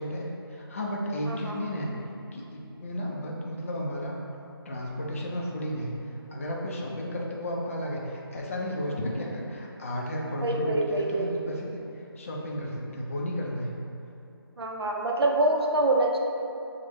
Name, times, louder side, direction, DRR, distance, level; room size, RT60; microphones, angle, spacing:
voice 1, 0.0-1.9 2.3-4.2 4.7-5.9 6.3-13.7, equal, 35° left, -2 dB, 0.4 m, -33 dB
voice 2, 1.3-1.6 10.4-11.3 14.6-16.2, right 2 dB, 80° right, 1 dB, 0.5 m, -25 dB
4.4 x 2.1 x 3.0 m, 2.7 s
figure-of-eight pair, 155°, 13 cm